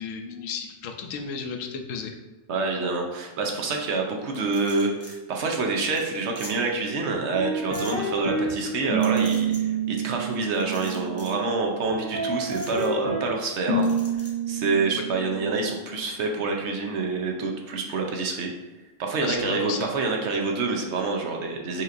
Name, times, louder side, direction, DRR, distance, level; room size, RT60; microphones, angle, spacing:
voice 1, 0.0-2.1 19.2-19.9, left 5 dB, 85° left, 5 dB, 1.0 m, -33 dB
voice 2, 2.5-13.9 14.5-18.5 19.0-21.8, right 3 dB, 65° right, 1 dB, 0.9 m, -27 dB
sound 1, 4.3-5.1 5.5-5.6 5.9-6.0 6.3-6.5 7.7-7.9 9.0-9.6 10.5-11.4 12.5-12.9 13.8-14.3, equal, 15° left, 0.6 m, -43 dB
sound 2, 7.1-8.5 8.9-11.4 11.9-13.3 13.7-15.7, right 4 dB, 45° right, 1.0 m, -28 dB
5.6 x 3.0 x 2.5 m, 1.1 s
omnidirectional pair, 1.3 m